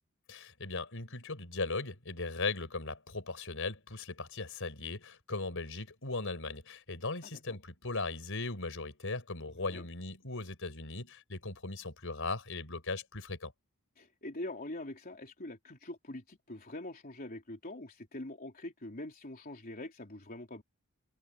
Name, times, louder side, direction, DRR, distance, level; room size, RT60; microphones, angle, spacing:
voice 1, 0.3-13.5, left 3 dB, 65° left, 5.6 m, -38 dB
voice 2, 7.2-7.6 9.7-9.9 14.0-20.6, left 1 dB, 40° left, 3.5 m, -44 dB
head